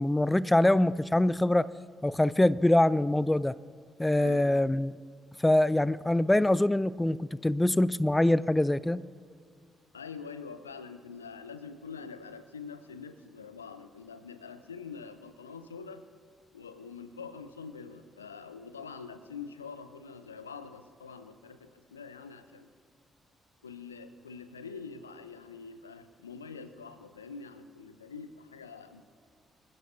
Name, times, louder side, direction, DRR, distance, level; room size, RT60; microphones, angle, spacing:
voice 1, 0.0-1.7 2.0-3.6 4.0-4.9 5.4-9.0, left 1 dB, 10° left, 19 dB, 0.4 m, -24 dB
voice 2, 4.1-4.5 9.9-16.1 16.5-22.7 23.6-29.0, left 5 dB, 85° left, 11 dB, 0.5 m, -45 dB
25.5 x 15.5 x 2.7 m, 2.1 s
figure-of-eight pair, 40°, 0 cm